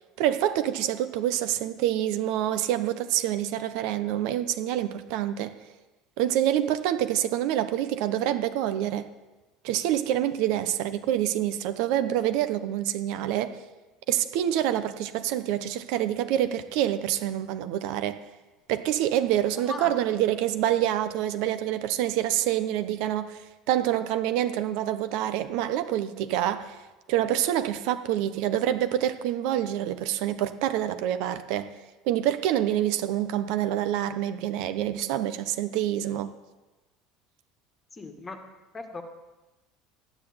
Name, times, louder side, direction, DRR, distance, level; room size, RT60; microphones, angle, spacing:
voice 1, 0.2-5.5 6.2-9.1 9.6-13.5 14.1-18.2 18.7-26.7 27.1-31.7 32.0-36.3, right 12 dB, 60° right, 10 dB, 1.0 m, -26 dB
voice 2, 19.6-19.9 37.9-38.4 38.7-39.0, left 3 dB, 15° left, 6 dB, 1.7 m, -37 dB
14.0 x 10.0 x 8.8 m, 1.1 s
cardioid pair, 170°, 0 cm